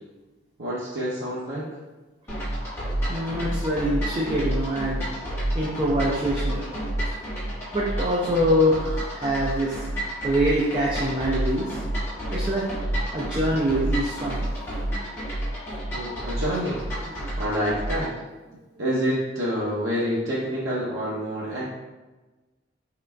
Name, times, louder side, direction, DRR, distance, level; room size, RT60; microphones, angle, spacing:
voice 1, 0.6-1.7 15.9-16.8 17.4-18.1 18.8-21.6, equal, 75° right, -6 dB, 0.7 m, -27 dB
sound 1, 2.3-18.1, right 1 dB, 10° left, 1.3 m, -30 dB
voice 2, 3.1-5.0 5.5-6.6 7.7-9.9 10.2-11.8 12.3-12.7 13.1-14.5 17.0-17.1, equal, 25° right, -5 dB, 0.4 m, -24 dB
4.2 x 3.8 x 2.2 m, 1.2 s
head